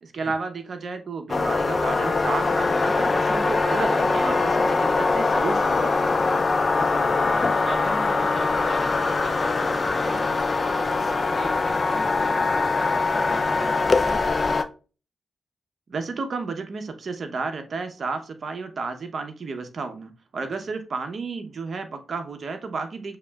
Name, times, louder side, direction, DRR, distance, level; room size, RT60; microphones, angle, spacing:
voice 1, 0.0-6.2 15.9-23.2, right 4 dB, 65° right, 0.8 m, -32 dB
sound 1, 1.3-14.6, left 3 dB, 50° left, 0.5 m, -22 dB
voice 2, 6.8-14.5, right 1 dB, 45° right, 1.9 m, -39 dB
6.8 x 3.1 x 2.3 m
cardioid pair, 50°, 0 cm